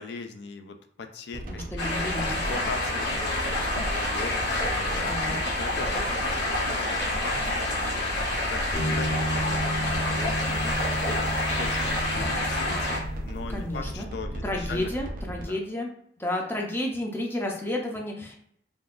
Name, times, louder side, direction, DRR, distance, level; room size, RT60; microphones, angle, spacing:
voice 1, 0.0-11.9 12.1-14.9 15.4-15.6, left 4 dB, 70° left, 7 dB, 0.4 m, -40 dB
sound 1, 1.3-15.4, right 1 dB, 55° right, 0.4 m, -36 dB
voice 2, 1.5-2.4 5.1-5.4 13.5-14.1 14.4-15.9 16.2-18.4, left 1 dB, 15° left, 0 dB, 0.5 m, -31 dB
sound 2, 1.8-13.0, left 2 dB, 85° left, 1.1 m, -28 dB
sound 3, 8.7-13.6, right 1 dB, 40° left, 0.9 m, -32 dB
3.6 x 2.3 x 2.4 m, 0.68 s
head